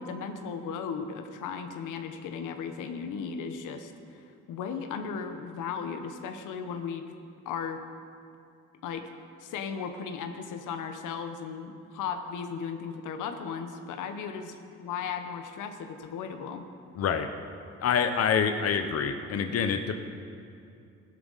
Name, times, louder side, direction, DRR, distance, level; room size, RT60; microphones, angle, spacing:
voice 1, 0.0-4.2 4.5-7.0 7.4-7.8 8.8-9.1 9.4-16.6, left 6 dB, 85° left, 6 dB, 1.0 m, -36 dB
voice 2, 17.0-17.3 17.8-20.0, left 7 dB, 55° left, 7 dB, 0.8 m, -26 dB
16.0 x 12.5 x 4.1 m, 2.5 s
cardioid pair, 90°, 30 cm